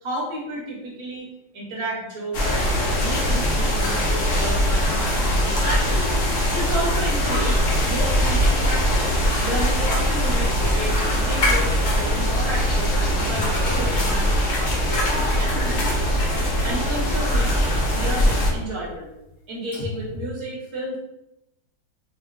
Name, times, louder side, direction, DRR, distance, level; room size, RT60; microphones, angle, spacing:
voice 1, 0.0-1.3 1.5-9.1 9.4-14.5 14.8-17.6 17.9-19.1 19.5-21.0, right 1 dB, 30° right, -5 dB, 0.5 m, -32 dB
sound 1, 2.3-18.5, equal, 90° left, 0.5 m, -21 dB
sound 2, 8.1-11.6 11.9-12.9 13.2-20.3, left 2 dB, 55° left, 0.8 m, -40 dB
2.9 x 2.6 x 2.5 m, 0.91 s
omnidirectional pair, 2.1 m